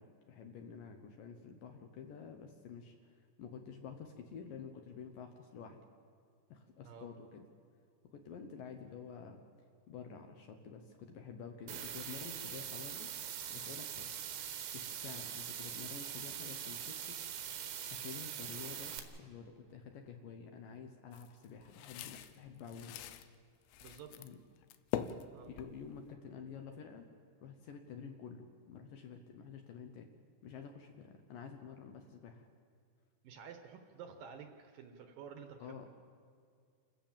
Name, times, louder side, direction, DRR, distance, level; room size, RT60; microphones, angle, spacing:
voice 1, 0.0-5.8 6.5-7.5 8.1-9.4 9.9-14.1 14.7-17.3 17.9-23.0 24.1-24.4 25.5-27.1 27.4-30.1 30.4-32.5 35.6-35.9, left 6 dB, 70° left, 5 dB, 2.4 m, -50 dB
sound 1, 11.7-19.0, right 9 dB, 85° right, 3.6 m, -43 dB
sound 2, 21.1-23.3 23.7-24.3 24.6-26.1, left 11 dB, 90° left, 3.0 m, -43 dB
voice 2, 23.8-24.1 25.3-25.5 33.2-35.8, right 7 dB, 65° right, 6 dB, 2.5 m, -51 dB
28.5 x 14.5 x 7.4 m, 2.2 s
omnidirectional pair, 4.8 m